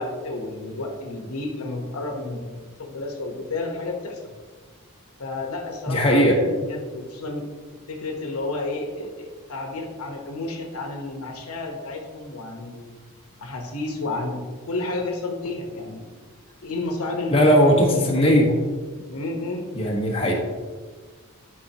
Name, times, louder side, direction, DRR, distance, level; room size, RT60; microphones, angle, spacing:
voice 1, 0.0-4.3 5.2-7.5 7.9-13.0 13.4-16.1 16.6-18.4 19.1-19.7, left 2 dB, 80° left, 2 dB, 1.1 m, -31 dB
voice 2, 5.9-6.3 17.3-18.5 19.7-20.3, equal, 25° left, -3 dB, 1.4 m, -18 dB
11.5 x 5.2 x 2.9 m, 1.5 s
head